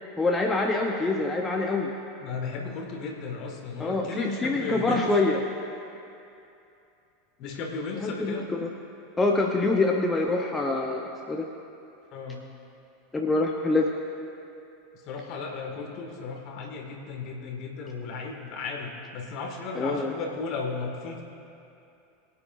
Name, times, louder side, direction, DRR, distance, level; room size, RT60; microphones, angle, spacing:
voice 1, 0.2-1.9 3.8-5.4 8.0-8.7 9.2-11.5 13.1-13.9 19.7-20.1, left 2 dB, 15° left, 1 dB, 0.8 m, -25 dB
voice 2, 2.2-5.1 7.4-8.5 12.1-12.4 15.1-21.2, left 4 dB, 45° left, 1 dB, 1.9 m, -35 dB
22.5 x 9.5 x 2.6 m, 2.7 s
figure-of-eight pair, 80°, 0 cm